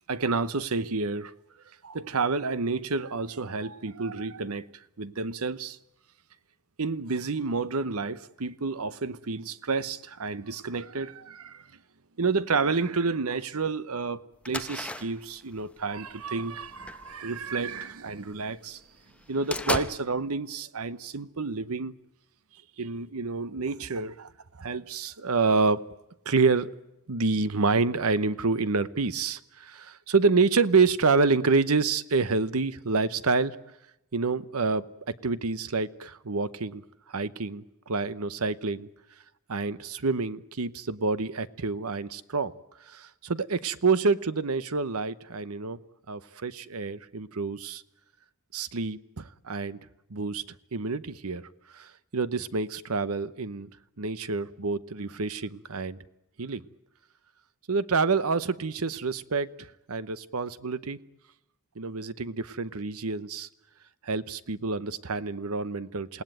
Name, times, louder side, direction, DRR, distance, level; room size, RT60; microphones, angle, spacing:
voice 1, 0.1-1.3 1.8-4.7 5.0-5.8 6.8-11.6 12.2-18.8 19.3-21.9 22.8-24.3 24.6-25.8 26.2-26.7 27.1-33.6 34.1-36.8 37.1-38.9 39.5-42.5 42.9-45.8 46.1-47.8 48.5-49.8 50.1-50.4 50.7-51.5 51.7-53.7 54.0-56.0 56.4-56.6 57.7-61.0 61.8-63.5 64.0-66.2, right 4 dB, 80° right, 0.9 m, -28 dB
sound 1, 14.4-18.2 18.7-18.8 19.1-19.9, left 1 dB, 5° left, 0.9 m, -36 dB
28.0 x 18.5 x 9.1 m
head